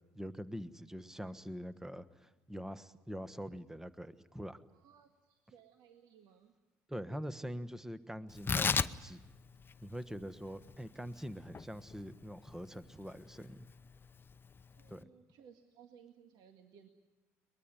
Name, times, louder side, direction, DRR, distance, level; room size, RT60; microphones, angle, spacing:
voice 1, 0.1-4.6 6.9-9.2 9.8-13.7 14.9-15.1, equal, 5° right, 12 dB, 1.3 m, -44 dB
voice 2, 4.7-6.5 10.2-10.3 14.7-16.9, right 8 dB, 60° right, 5 dB, 1.9 m, -61 dB
Tearing, 8.3-15.0, left 5 dB, 25° left, 0.8 m, -38 dB
23.0 x 21.0 x 10.0 m, 1.1 s
hypercardioid pair, 70°, 8 cm